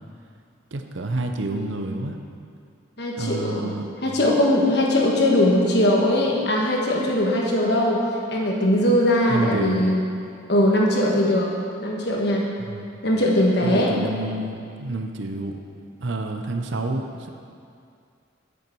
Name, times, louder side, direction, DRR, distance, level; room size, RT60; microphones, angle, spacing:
voice 1, 0.7-2.2 3.2-3.9 9.3-9.8 12.7-12.9 13.6-15.6 16.0-17.3, right 2 dB, 75° right, 5 dB, 0.7 m, -28 dB
voice 2, 3.0-3.7 4.0-8.0 8.3-10.0 10.5-11.5 11.8-12.4 13.0-13.9, left 1 dB, 55° left, -2 dB, 1.3 m, -20 dB
8.0 x 7.4 x 4.7 m, 2.4 s
head